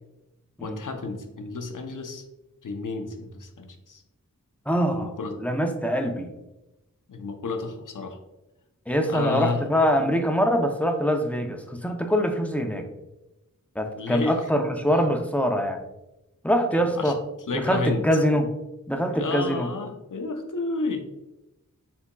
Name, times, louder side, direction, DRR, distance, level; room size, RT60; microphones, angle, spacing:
voice 1, 0.6-2.2 2.6-4.0 4.9-5.3 7.1-8.2 9.1-9.6 14.0-14.4 14.9-15.0 16.7-17.2 17.5-18.0 19.1-21.0, left 3 dB, 65° left, 5 dB, 0.7 m, -31 dB
voice 2, 4.7-6.3 8.9-12.9 13.8-15.8 16.4-17.2 17.5-18.5 18.9-19.7, equal, 5° left, 4 dB, 0.5 m, -24 dB
5.7 x 3.5 x 2.2 m, 0.95 s
wide cardioid pair, 60°, 34 cm